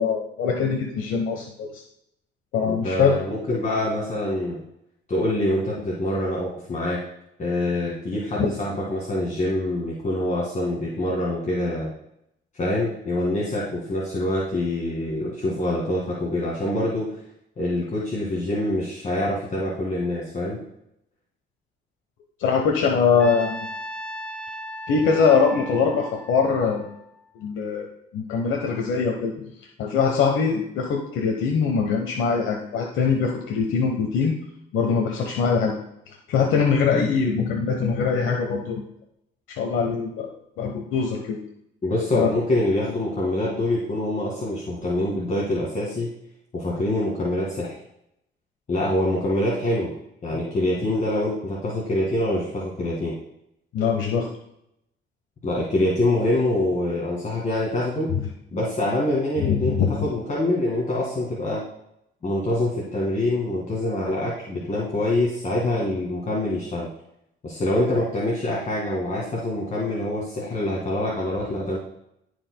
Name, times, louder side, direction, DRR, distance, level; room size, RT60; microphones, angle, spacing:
voice 1, 0.0-1.8 2.5-3.2 8.4-8.5 22.4-23.7 24.9-26.9 27.4-27.9 28.1-29.3 29.8-34.4 34.7-35.7 36.3-38.8 39.5-40.3 40.6-41.4 42.1-42.3 53.7-54.3 59.4-60.1, left 5 dB, 85° left, 1 dB, 1.1 m, -22 dB
voice 2, 2.7-4.6 5.1-7.0 7.4-11.9 12.5-17.1 17.6-20.6 41.8-46.1 46.5-47.8 48.7-49.9 50.2-53.1 55.4-58.1 58.5-59.7 60.0-61.6 62.2-66.9 67.4-71.8, left 1 dB, 40° left, -5 dB, 2.0 m, -25 dB
Trumpet, 23.2-27.4, equal, 5° left, 0.8 m, -37 dB
14.0 x 5.0 x 2.2 m, 0.78 s
cardioid pair, 90°, 20 cm